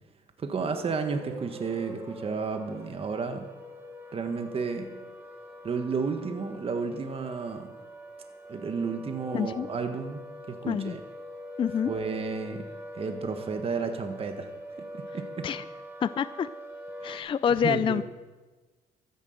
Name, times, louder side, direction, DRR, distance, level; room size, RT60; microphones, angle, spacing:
voice 1, 0.4-3.5 4.1-4.9 5.6-7.7 8.5-11.0 11.8-12.6 12.9-14.5 14.9-15.5 17.0-17.3 17.6-18.0, right 5 dB, 35° right, 6 dB, 1.5 m, -32 dB
sound 1, 0.6-17.2, equal, 15° right, 3.3 m, -44 dB
voice 2, 9.3-9.7 10.7-10.9 11.6-11.9 15.4-15.6 16.0-16.5 17.0-18.0, left 7 dB, 30° left, 15 dB, 0.4 m, -27 dB
13.5 x 10.0 x 8.0 m, 1.3 s
cardioid pair, 110°, 17 cm